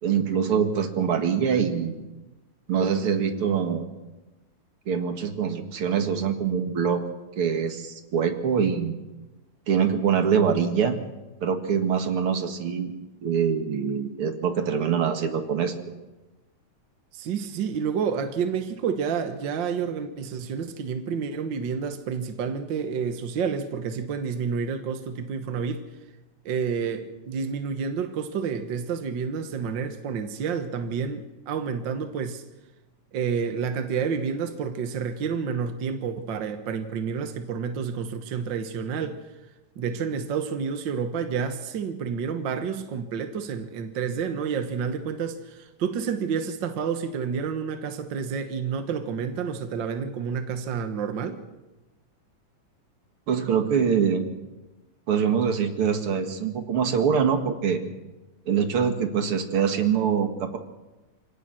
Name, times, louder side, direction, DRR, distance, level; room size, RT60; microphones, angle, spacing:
voice 1, 0.0-2.0 2.7-3.8 4.9-7.0 7.4-9.0 9.7-11.0 11.4-12.9 13.2-16.0 53.3-54.2 55.1-57.8 58.5-60.6, right 7 dB, 50° right, 2.2 m, -24 dB
voice 2, 17.1-25.8 26.4-32.4 33.1-39.2 39.8-51.4, right 6 dB, 65° right, 1.1 m, -29 dB
26.5 x 18.0 x 6.3 m
omnidirectional pair, 3.8 m